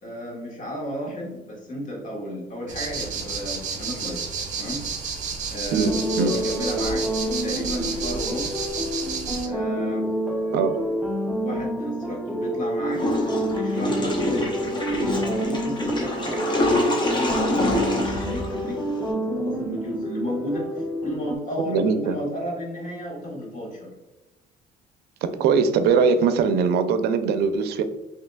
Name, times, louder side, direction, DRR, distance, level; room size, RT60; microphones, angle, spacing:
voice 1, 0.0-4.2 4.6-4.8 5.5-8.6 9.4-10.1 11.4-13.0 13.4-23.9, equal, 50° left, -2 dB, 1.5 m, -33 dB
sound 1, 2.7-9.5, right 5 dB, 45° right, 0.9 m, -31 dB
sound 2, 5.9-21.4, right 1 dB, 5° right, 0.5 m, -28 dB
Water / Toilet flush, 12.9-19.1, left 1 dB, 25° left, 0.9 m, -26 dB
voice 2, 21.7-22.2 25.2-27.8, right 5 dB, 75° right, 10 dB, 0.4 m, -21 dB
5.8 x 2.8 x 2.2 m, 1.1 s
cardioid pair, 110°, 17 cm